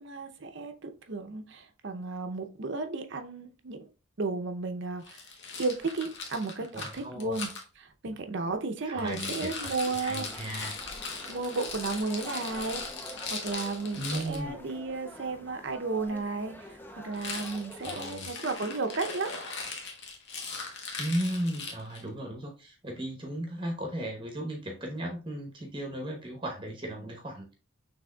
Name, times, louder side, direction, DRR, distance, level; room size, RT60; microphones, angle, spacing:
voice 1, 0.0-3.9 4.2-5.2 5.6-7.5 8.0-10.3 11.3-12.8 13.3-19.3, right 3 dB, 55° right, 0.6 m, -33 dB
Rattle, 5.0-7.6 9.0-14.4 17.1-22.1, left 4 dB, 55° left, 1.0 m, -39 dB
voice 2, 6.7-7.4 8.9-10.8 14.0-14.6 17.8-18.3 21.0-27.5, right 1 dB, 20° right, 0.9 m, -36 dB
sound 1, 9.6-18.2, left 1 dB, 10° left, 0.3 m, -46 dB
6.1 x 3.4 x 2.2 m
head